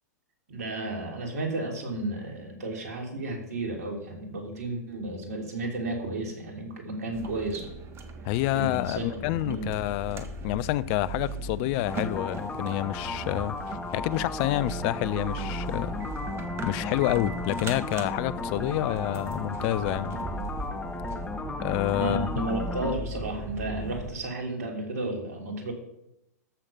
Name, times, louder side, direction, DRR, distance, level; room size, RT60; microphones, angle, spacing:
voice 1, 0.5-7.8 8.5-9.7 22.0-25.7, right 2 dB, 65° right, 3.2 m, -33 dB
sound 1, 7.1-24.1, right 3 dB, 25° right, 1.5 m, -38 dB
voice 2, 8.2-16.0 16.6-20.2 21.6-22.3, left 15 dB, 40° left, 0.6 m, -28 dB
sound 2, 11.9-23.0, left 3 dB, 10° left, 1.1 m, -35 dB
13.5 x 6.5 x 5.7 m
figure-of-eight pair, 105°, 9 cm